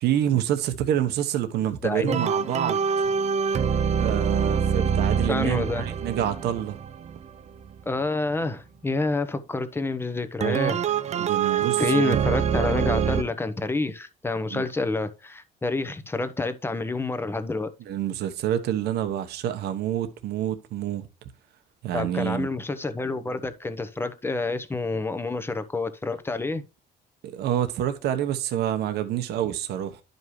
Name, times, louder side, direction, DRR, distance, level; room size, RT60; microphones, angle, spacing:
voice 1, 0.0-2.8 3.9-6.8 11.2-12.2 14.5-14.6 17.8-21.1 21.8-22.5 27.2-30.0, right 11 dB, 75° right, 1.1 m, -27 dB
voice 2, 1.8-2.2 5.3-5.9 7.9-10.8 11.5-17.7 21.9-26.6, left 3 dB, 15° left, 1.0 m, -28 dB
sound 1, 2.1-7.8 10.4-13.2, right 7 dB, 40° right, 0.5 m, -25 dB
11.0 x 5.4 x 3.1 m
cardioid pair, 110°, 17 cm